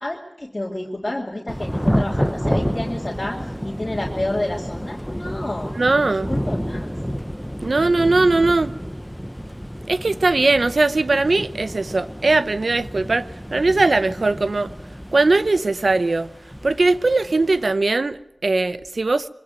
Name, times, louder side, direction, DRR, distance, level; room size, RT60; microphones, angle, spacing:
voice 1, 0.0-3.4 3.6-5.7 6.0-6.9, left 1 dB, 40° left, 2.5 m, -29 dB
Thunder / Rain, 1.5-17.7, equal, ahead, 0.9 m, -29 dB
voice 2, 5.8-6.4 7.6-8.7 9.9-14.7 15.1-16.3 16.6-19.3, right 3 dB, 80° right, 0.8 m, -19 dB
23.5 x 16.5 x 9.1 m
wide cardioid pair, 50°, 0 cm